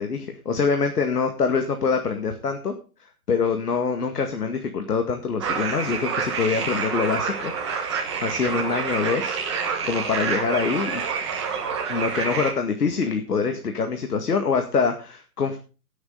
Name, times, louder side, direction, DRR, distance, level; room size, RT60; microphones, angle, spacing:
voice 1, 0.0-2.7 3.0-7.5 8.2-11.1 11.9-15.6, left 5 dB, 80° left, 5 dB, 2.1 m, -25 dB
sound 1, 5.4-12.5, right 6 dB, 20° right, 1.4 m, -28 dB
17.5 x 7.9 x 3.9 m, 0.34 s
hypercardioid pair, 175°, 46 cm